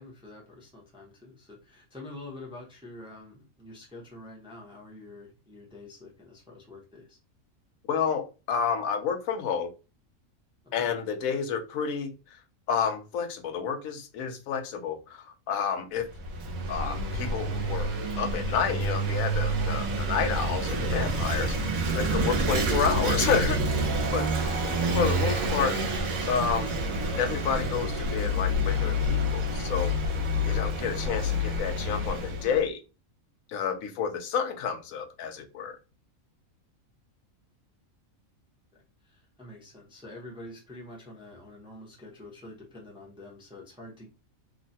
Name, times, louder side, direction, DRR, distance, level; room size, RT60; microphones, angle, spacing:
voice 1, 0.0-7.2 10.6-10.9 24.5-24.6 39.0-44.1, left 2 dB, 5° right, 0.5 m, -46 dB
voice 2, 7.9-9.7 10.7-12.1 12.7-16.1 16.7-23.6 24.1-24.3 24.9-25.7 26.3-26.7 27.2-29.9 30.5-32.8 33.5-35.8, left 7 dB, 80° left, 1.0 m, -30 dB
Vehicle / Engine, 16.0-32.6, equal, 85° right, 1.1 m, -28 dB
3.0 x 2.1 x 2.6 m
omnidirectional pair, 1.4 m